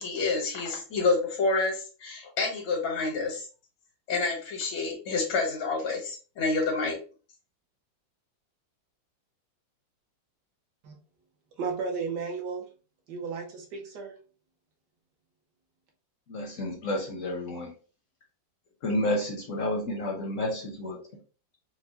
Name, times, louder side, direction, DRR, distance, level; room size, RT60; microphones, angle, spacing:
voice 1, 0.0-3.5 4.1-7.0, left 3 dB, 90° left, 1 dB, 1.9 m, -28 dB
voice 2, 11.6-12.7 13.1-14.2, right 5 dB, 65° right, 2 dB, 1.3 m, -34 dB
voice 3, 16.3-17.7 18.8-21.2, left 1 dB, 60° left, 1 dB, 0.8 m, -31 dB
4.6 x 2.2 x 2.7 m, 0.36 s
omnidirectional pair, 2.1 m